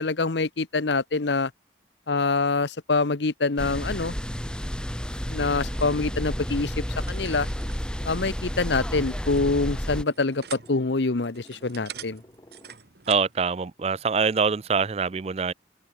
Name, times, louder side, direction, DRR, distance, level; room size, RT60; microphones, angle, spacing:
voice 1, 0.0-1.5 2.1-4.1 5.3-7.5 8.0-12.2, left 3 dB, 70° left, 0.9 m, -25 dB
sound 1, 3.6-10.0, equal, 5° left, 1.5 m, -31 dB
sound 2, 5.2-12.8, equal, 20° left, 3.8 m, -55 dB
sound 3, 5.5-13.4, right 8 dB, 60° right, 1.9 m, -46 dB
voice 2, 13.1-15.5, right 5 dB, 35° right, 0.4 m, -24 dB
open air
head